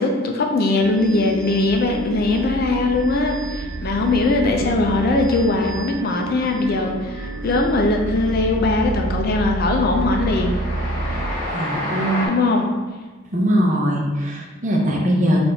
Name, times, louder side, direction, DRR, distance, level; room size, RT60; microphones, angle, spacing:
voice 1, 0.0-10.6 12.3-12.7, left 2 dB, 45° left, 2 dB, 0.4 m, -20 dB
sound 1, 0.8-11.3, right 2 dB, 70° right, 0.4 m, -29 dB
Train, 6.6-7.1 7.4-12.3, left 1 dB, 5° left, 1.4 m, -31 dB
voice 2, 11.5-12.2 13.3-15.5, equal, 35° right, -2 dB, 0.7 m, -20 dB
3.9 x 2.5 x 4.4 m, 1.3 s
head